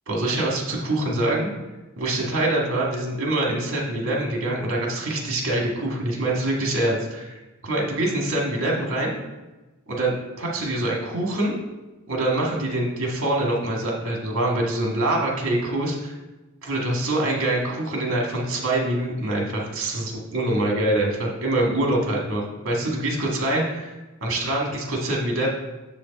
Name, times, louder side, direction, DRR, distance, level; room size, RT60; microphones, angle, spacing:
voice 1, 0.1-1.5 2.0-7.3 7.6-9.1 9.9-11.6 12.1-16.2 16.6-23.9 24.2-25.5, right 1 dB, 60° right, -1 dB, 1.8 m, -25 dB
7.3 x 5.1 x 4.1 m, 1.1 s
head